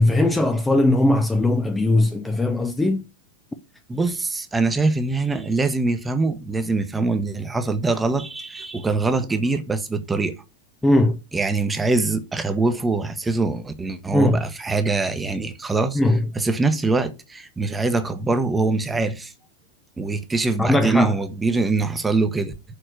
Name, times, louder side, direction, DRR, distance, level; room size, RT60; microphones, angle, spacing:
voice 1, 0.0-3.0 10.8-11.2 14.1-14.4 15.9-16.2 20.6-21.1, left 1 dB, 10° left, 0.7 m, -19 dB
voice 2, 3.9-10.3 11.3-16.0 16.3-19.3 20.0-22.5, right 3 dB, 10° right, 1.1 m, -23 dB
6.7 x 4.4 x 6.0 m
figure-of-eight pair, 90°, 0 cm